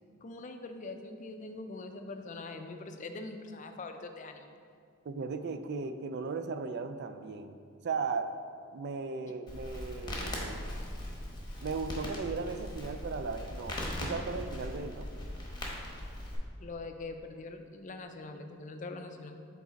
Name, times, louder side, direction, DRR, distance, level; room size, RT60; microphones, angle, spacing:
voice 1, 0.2-4.5 16.6-19.4, left 3 dB, 35° left, 6 dB, 0.4 m, -43 dB
voice 2, 5.1-8.3 8.7-10.7 11.6-15.1, right 4 dB, 50° right, 9 dB, 0.3 m, -37 dB
Crackle, 9.5-16.4, left 1 dB, 20° left, 1.0 m, -39 dB
7.2 x 4.0 x 4.0 m, 2.2 s
head